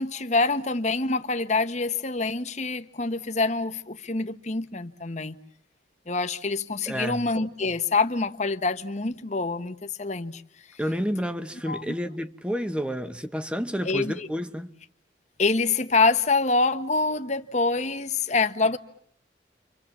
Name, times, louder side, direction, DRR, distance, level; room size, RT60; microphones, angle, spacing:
voice 1, 0.0-5.4 6.1-10.4 11.7-11.8 13.8-14.3 15.4-18.8, left 3 dB, 40° left, 1.1 m, -26 dB
voice 2, 6.9-7.3 10.8-14.7, equal, 5° right, 1.1 m, -30 dB
29.5 x 26.0 x 7.4 m
head